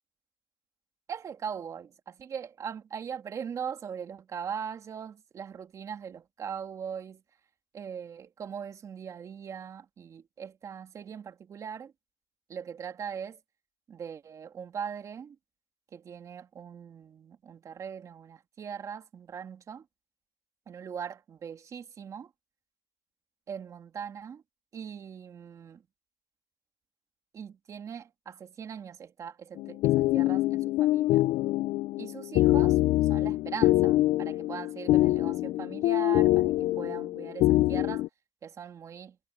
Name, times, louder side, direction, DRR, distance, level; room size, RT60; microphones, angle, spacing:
voice 1, 1.1-7.2 7.7-11.9 12.5-13.4 13.9-15.4 15.9-19.9 20.7-22.3 23.5-24.4 24.7-25.8 27.3-31.2 32.0-38.1 38.4-39.2, right 7 dB, 40° right, 2.8 m, -40 dB
sound 1, 29.6-38.1, left 16 dB, 70° left, 0.4 m, -25 dB
cardioid pair, 130°, 9 cm